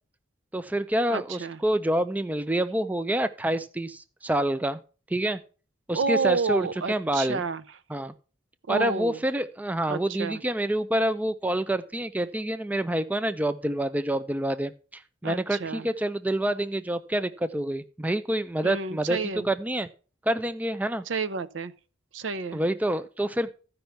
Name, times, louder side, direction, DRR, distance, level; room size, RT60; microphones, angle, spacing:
voice 1, 0.5-4.8 5.1-5.4 5.9-7.4 7.9-8.1 8.7-14.7 15.2-19.2 19.4-19.9 20.3-21.0 22.5-23.5, right 1 dB, 10° right, 0.4 m, -27 dB
voice 2, 1.1-1.6 5.9-7.6 8.7-9.2 9.9-10.4 15.2-15.9 18.6-19.5 21.1-21.7 22.1-22.6, right 4 dB, 75° right, 0.6 m, -30 dB
13.0 x 5.4 x 5.7 m
head